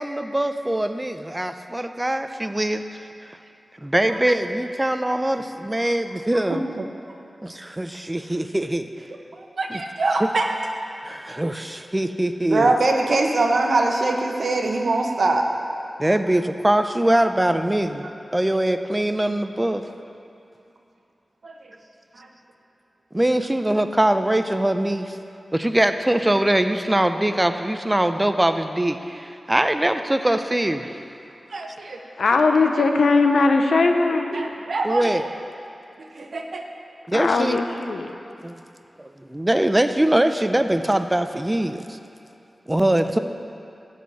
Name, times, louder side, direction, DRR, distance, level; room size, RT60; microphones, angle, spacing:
voice 1, 0.0-2.8 3.8-6.6 7.4-8.9 9.7-9.8 11.0-12.7 16.0-19.8 23.1-25.2 25.5-30.9 34.8-35.2 37.1-37.6 38.4-38.6 39.0-42.0 42.7-43.2, right 1 dB, 20° right, 8 dB, 0.5 m, -22 dB
voice 2, 6.5-6.9 9.4-10.5 12.5-15.4 21.4-21.5 22.2-22.3 31.5-32.0 32.7-32.8 33.7-33.9 34.3-35.2 36.1-36.6, right 2 dB, 75° right, 2 dB, 0.9 m, -23 dB
voice 3, 32.2-34.4 37.1-38.1, left 3 dB, 90° left, 5 dB, 0.7 m, -19 dB
12.0 x 4.3 x 8.2 m, 2.7 s
wide cardioid pair, 65°, 0 cm